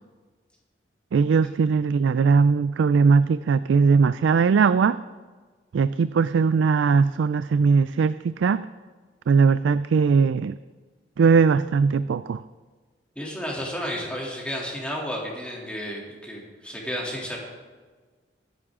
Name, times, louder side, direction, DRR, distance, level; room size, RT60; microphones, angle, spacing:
voice 1, 1.1-5.0 5.7-8.7 9.3-10.6 11.2-12.4, right 5 dB, 90° right, 14 dB, 0.3 m, -20 dB
voice 2, 13.2-17.4, equal, 5° left, -3 dB, 2.9 m, -32 dB
22.5 x 9.8 x 3.7 m, 1.4 s
head